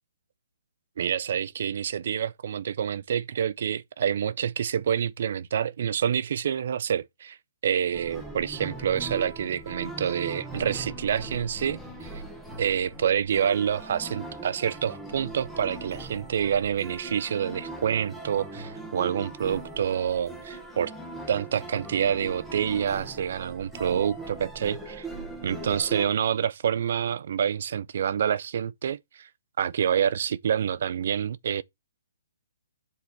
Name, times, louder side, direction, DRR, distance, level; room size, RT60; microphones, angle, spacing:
voice 1, 1.0-7.4 7.6-12.2 12.6-20.9 21.3-25.1 25.4-29.3 29.6-31.6, right 8 dB, 55° right, 0.4 m, -27 dB
sound 1, 7.9-26.1, right 2 dB, 5° left, 1.0 m, -40 dB
5.0 x 4.0 x 5.5 m
hypercardioid pair, 160°, 0 cm